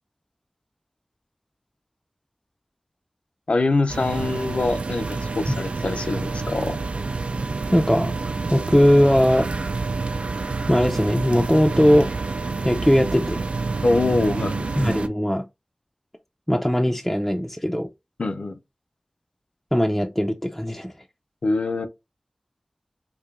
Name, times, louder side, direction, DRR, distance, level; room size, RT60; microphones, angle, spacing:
voice 1, 3.5-6.8 13.8-14.7 18.2-18.6 21.4-21.9, left 2 dB, 75° left, 0.5 m, -24 dB
sound 1, 3.9-15.1, right 3 dB, 75° right, 0.4 m, -28 dB
voice 2, 7.7-8.1 8.5-9.5 10.7-12.1 12.6-13.4 14.8-15.5 16.5-17.9 19.7-20.9, equal, 5° left, 0.4 m, -19 dB
4.7 x 2.6 x 2.4 m
wide cardioid pair, 65°, 2 cm